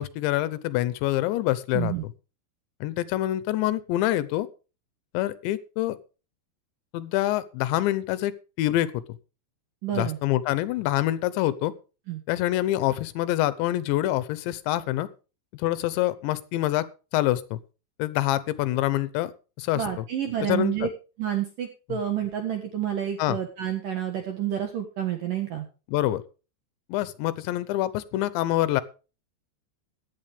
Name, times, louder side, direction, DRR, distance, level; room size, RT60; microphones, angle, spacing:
voice 1, 0.0-1.9 2.8-4.5 5.1-6.0 6.9-8.3 8.6-9.0 10.0-11.7 12.3-15.1 15.5-16.9 17.1-17.6 18.0-19.3 19.6-19.8 20.4-20.8 21.9-22.0 23.2-23.4 25.9-26.2 26.9-28.8, left 15 dB, 80° left, 16 dB, 3.0 m, -26 dB
voice 2, 1.7-2.0 9.8-10.2 12.1-12.2 19.7-20.9 21.2-25.7, right 10 dB, 60° right, 5 dB, 2.5 m, -29 dB
15.5 x 11.0 x 3.5 m, 0.34 s
omnidirectional pair, 5.4 m